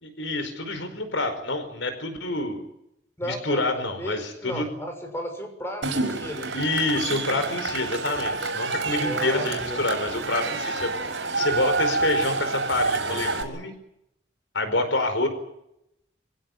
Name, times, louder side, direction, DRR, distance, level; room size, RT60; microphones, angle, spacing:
voice 1, 0.0-2.6 3.2-4.7 6.5-10.9 11.4-13.7 14.5-15.3, left 2 dB, 80° left, 8 dB, 4.7 m, -27 dB
voice 2, 3.2-6.5 9.0-9.8, equal, 15° left, 4 dB, 6.7 m, -35 dB
Cheering / Crowd, 5.8-13.4, right 3 dB, 85° right, 6.0 m, -28 dB
25.5 x 17.0 x 9.5 m, 0.81 s
head